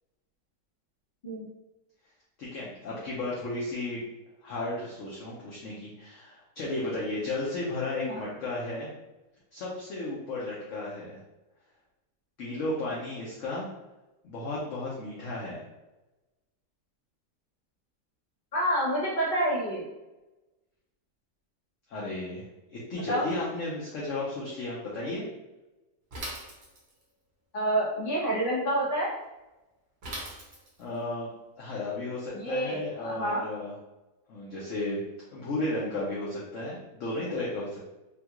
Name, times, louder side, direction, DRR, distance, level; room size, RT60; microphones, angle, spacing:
voice 1, 2.4-4.0 4.4-8.9 9.5-11.2 12.4-13.7 14.2-15.6 21.9-22.4 22.7-25.3 30.8-31.3 31.6-33.7 34.3-35.0 35.3-37.8, left 2 dB, 60° left, -6 dB, 0.9 m, -34 dB
voice 2, 18.5-19.8 22.9-23.3 27.5-29.1 32.3-33.4, right 1 dB, 35° left, -6 dB, 1.1 m, -28 dB
Bicycle / Mechanisms, 26.1-27.1 30.0-30.9, right 1 dB, 45° right, 1.0 m, -39 dB
3.5 x 2.3 x 2.9 m, 1.0 s
omnidirectional pair, 1.8 m